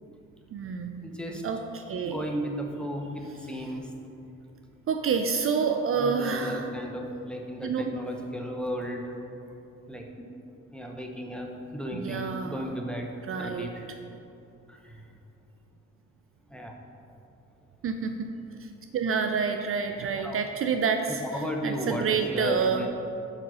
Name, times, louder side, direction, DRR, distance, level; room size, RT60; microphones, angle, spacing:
voice 1, 0.5-2.3 4.9-6.7 7.6-7.9 11.9-12.7 13.2-13.7 17.8-18.3 18.9-22.9, right 5 dB, 45° right, 6 dB, 0.4 m, -28 dB
voice 2, 1.0-1.4 2.0-3.8 6.0-9.0 9.9-10.1 10.7-13.1 13.4-13.8 14.7-14.8 16.5-16.7 20.2-20.4 21.3-22.1 22.3-22.9, equal, 5° left, 1 dB, 0.8 m, -34 dB
5.3 x 4.9 x 6.1 m, 2.7 s
cardioid pair, 90°, 30 cm